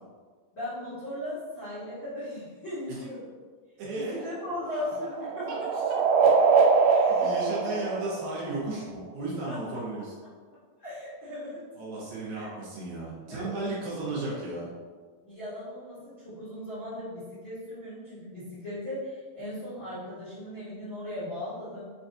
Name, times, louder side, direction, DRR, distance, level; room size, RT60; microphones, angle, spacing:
voice 1, 0.5-3.3 3.9-5.8 6.9-7.9 9.4-9.8 10.2-10.3 10.8-11.6 12.3-12.5 13.2-13.5 15.2-21.9, left 1 dB, 80° left, -14 dB, 1.1 m, -38 dB
voice 2, 3.8-4.2 7.2-10.1 11.8-14.7, right 2 dB, 75° right, -6 dB, 2.3 m, -34 dB
sound 1, 4.0-8.8, right 5 dB, 90° right, 2.7 m, -24 dB
6.5 x 2.3 x 2.7 m, 1.5 s
omnidirectional pair, 4.8 m